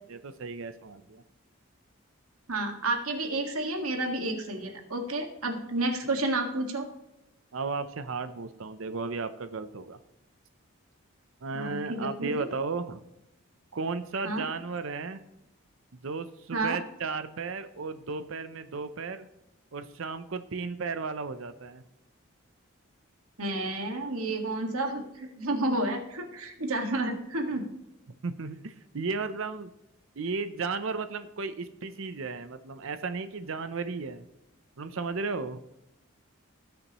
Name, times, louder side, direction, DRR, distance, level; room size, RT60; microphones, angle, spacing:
voice 1, 0.1-1.2 7.5-10.0 11.4-13.0 13.7-15.2 16.0-19.3 19.7-21.8 28.2-29.7 30.2-34.2 34.8-35.6, right 4 dB, 70° right, 11 dB, 0.6 m, -34 dB
voice 2, 2.5-6.9 11.5-12.5 14.2-14.5 16.5-16.8 23.4-27.7, right 2 dB, 85° right, 4 dB, 1.8 m, -30 dB
18.0 x 6.9 x 3.0 m, 0.88 s
head